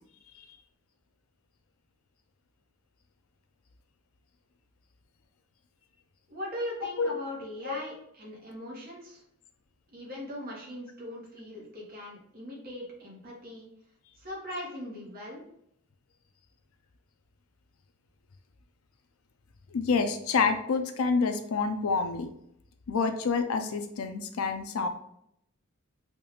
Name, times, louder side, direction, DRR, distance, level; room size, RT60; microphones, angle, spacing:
voice 1, 6.3-9.2 9.9-13.7 14.2-15.4, equal, 45° right, -3 dB, 1.1 m, -40 dB
voice 2, 19.7-22.3 22.9-24.9, left 4 dB, 80° left, 7 dB, 0.4 m, -27 dB
3.5 x 2.3 x 3.0 m, 0.74 s
head